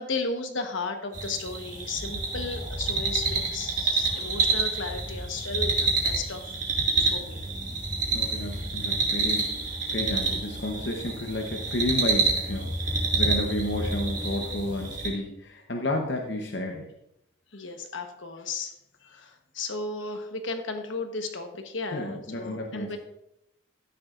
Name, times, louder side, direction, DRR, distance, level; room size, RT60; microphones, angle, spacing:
voice 1, 0.0-6.5 7.1-7.4 17.5-18.7 19.0-23.0, left 3 dB, 70° left, 5 dB, 1.2 m, -34 dB
sound 1, 1.1-15.1, right 3 dB, 40° right, 1.9 m, -28 dB
voice 2, 8.1-16.9 21.9-23.0, left 1 dB, 55° left, 2 dB, 0.9 m, -32 dB
12.5 x 9.5 x 2.5 m, 0.80 s
head